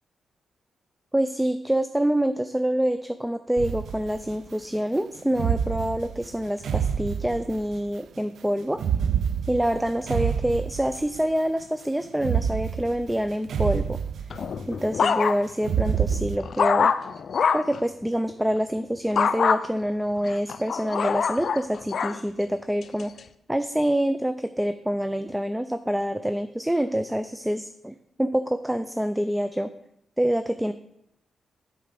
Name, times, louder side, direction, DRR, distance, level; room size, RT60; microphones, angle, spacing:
voice 1, 1.1-8.8 9.5-14.0 14.7-16.9 17.5-23.1 23.5-29.7 30.2-30.7, equal, 5° right, 10 dB, 0.4 m, -26 dB
sound 1, 3.6-4.4 5.3-7.8 8.7-11.3 12.2-14.7 15.6-16.4, right 8 dB, 80° right, 0.3 m, -28 dB
sound 2, 14.3-15.7 16.1-17.8 19.2-19.6 20.2-22.2 22.8-23.2, left 6 dB, 65° left, 0.4 m, -24 dB
7.7 x 4.8 x 6.8 m, 0.77 s
cardioid pair, 85°, 0 cm